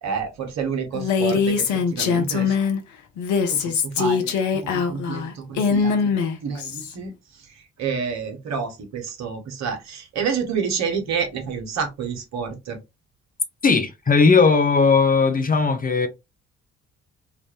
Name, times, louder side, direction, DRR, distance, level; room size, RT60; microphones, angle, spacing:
voice 1, 0.0-2.5 3.5-4.4 4.9-6.1 6.4-7.1 7.4-7.5 7.8-12.8, right 6 dB, 55° right, 1.2 m, -29 dB
Female speech woman speaking, 0.9-2.8 3.2-6.9, left 6 dB, 60° left, 0.8 m, -22 dB
voice 2, 13.6-16.1, left 4 dB, 25° left, 0.7 m, -17 dB
3.8 x 2.4 x 2.8 m
figure-of-eight pair, 45°, 32 cm